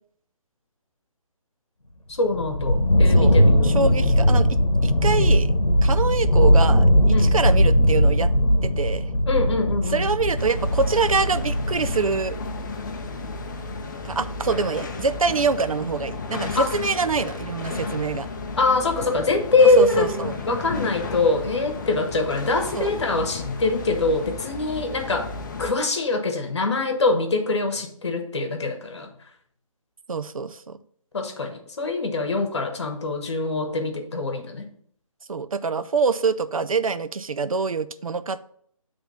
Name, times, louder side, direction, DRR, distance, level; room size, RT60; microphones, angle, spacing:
voice 1, 2.2-3.8 7.1-7.3 9.3-10.1 16.5-16.7 18.6-25.3 25.6-29.1 31.1-34.7, left 3 dB, 50° left, 5 dB, 1.3 m, -23 dB
sound 1, 2.3-12.0, equal, 90° left, 0.9 m, -19 dB
voice 2, 3.6-5.5 5.8-8.3 8.6-9.1 9.9-12.4 14.0-18.3 19.8-20.4 22.7-22.9 30.1-30.8 35.3-38.4, right 4 dB, 70° right, 12 dB, 0.5 m, -25 dB
sound 2, 10.4-25.7, left 3 dB, 35° left, 0.6 m, -33 dB
7.8 x 3.5 x 5.5 m, 0.63 s
figure-of-eight pair, 145°, 18 cm